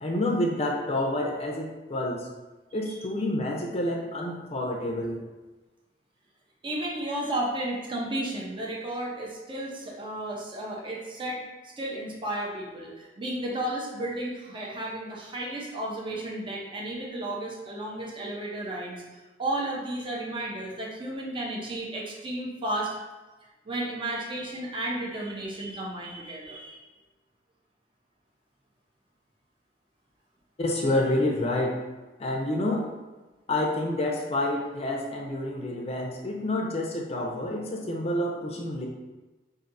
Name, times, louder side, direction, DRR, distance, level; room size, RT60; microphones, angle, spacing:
voice 1, 0.0-2.3 2.7-5.2 30.6-31.7 32.2-32.8 33.5-38.9, left 1 dB, 35° left, 0 dB, 0.5 m, -28 dB
voice 2, 6.6-11.4 11.8-22.9 23.7-26.8, right 1 dB, 30° right, -3 dB, 0.6 m, -33 dB
5.1 x 2.6 x 2.5 m, 1.2 s
head